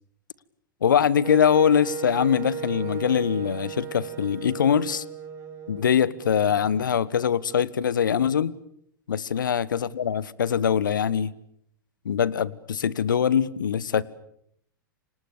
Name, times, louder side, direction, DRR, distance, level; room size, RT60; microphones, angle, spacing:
voice 1, 0.8-5.0 5.7-8.5 9.1-11.3 12.0-14.0, left 8 dB, 70° left, 1.2 m, -23 dB
Wind instrument woodwind instrument, 1.2-7.1, right 7 dB, 25° right, 5.3 m, -36 dB
29.0 x 26.0 x 7.0 m
figure-of-eight pair, 95°, 11 cm